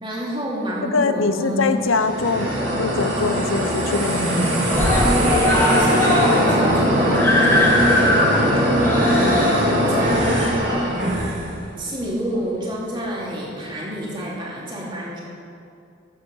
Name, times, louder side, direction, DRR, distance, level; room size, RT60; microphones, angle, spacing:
voice 1, 0.0-1.8 5.3-11.2 11.8-15.2, equal, 25° right, -5 dB, 2.7 m, -28 dB
voice 2, 0.9-4.9, left 3 dB, 85° left, 10 dB, 0.7 m, -23 dB
Screaming, 1.8-2.7 3.1-3.2 3.5-3.6 3.9-4.4 4.7-11.5 12.3-12.4, left 1 dB, 10° left, 1.6 m, -22 dB
sound 1, 1.8-11.5, equal, 65° right, 3.8 m, -20 dB
14.0 x 7.7 x 6.4 m, 2.5 s
head